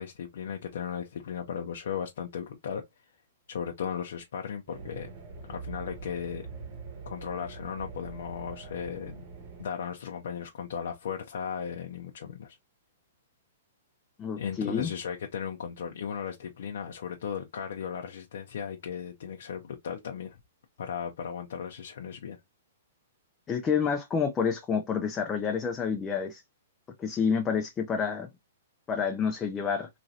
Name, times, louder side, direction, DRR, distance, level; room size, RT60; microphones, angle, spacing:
voice 1, 0.0-2.8 3.5-5.1 5.5-6.4 7.1-9.2 9.6-12.6 14.4-20.4 20.8-22.4, left 7 dB, 70° left, 0.5 m, -36 dB
sound 1, 4.7-9.6, right 5 dB, 45° right, 0.9 m, -43 dB
voice 2, 14.2-14.9 23.5-26.4 27.0-28.3 28.9-29.9, left 6 dB, 15° left, 0.4 m, -28 dB
3.0 x 2.5 x 2.6 m
hypercardioid pair, 160°, 0 cm